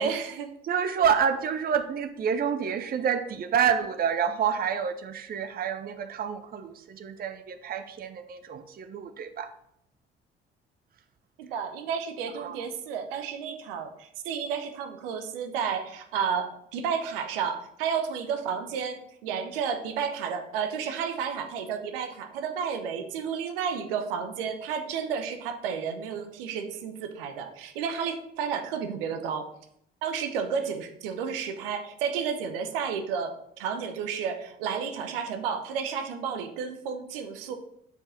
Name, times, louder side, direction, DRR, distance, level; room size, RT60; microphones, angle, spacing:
voice 1, 0.0-0.5 11.4-29.5 30.0-37.6, right 6 dB, 70° right, 6 dB, 0.8 m, -32 dB
voice 2, 0.6-9.5 12.3-12.7, right 7 dB, 30° right, 10 dB, 0.6 m, -28 dB
5.3 x 4.7 x 6.1 m, 0.73 s
figure-of-eight pair, 50°, 29 cm